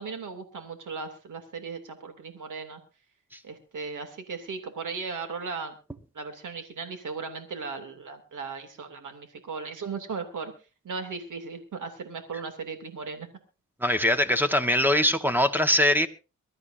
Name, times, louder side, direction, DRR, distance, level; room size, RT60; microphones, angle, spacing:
voice 1, 0.0-2.8 3.4-5.8 6.1-10.5 10.8-13.3, right 4 dB, 75° right, 7 dB, 2.7 m, -37 dB
voice 2, 13.8-16.1, left 1 dB, 5° right, 10 dB, 1.3 m, -22 dB
24.0 x 13.0 x 2.7 m, 0.32 s
cardioid pair, 85°, 31 cm